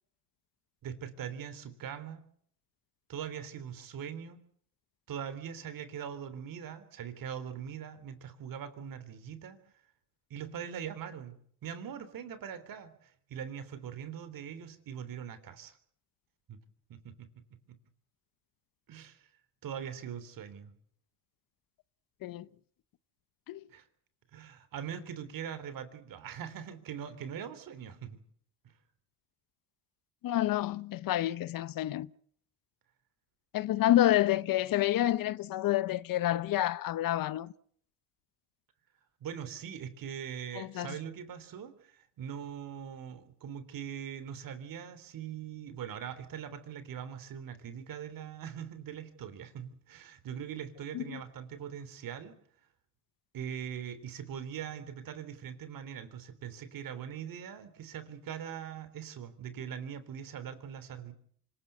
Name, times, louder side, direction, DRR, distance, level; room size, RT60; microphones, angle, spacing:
voice 1, 0.8-2.2 3.1-4.4 5.1-9.6 10.3-11.3 11.6-15.8 16.5-16.6 16.9-17.3 17.7-17.8 18.9-19.3 19.6-20.7 23.7-23.8 24.3-28.2 39.2-52.3 53.3-61.1, right 8 dB, 55° right, 3.4 m, -42 dB
voice 2, 30.2-32.1 33.5-37.5 40.5-41.0 50.9-51.2, left 13 dB, 55° left, 0.9 m, -28 dB
25.5 x 17.0 x 8.2 m
cardioid pair, 95°, 40 cm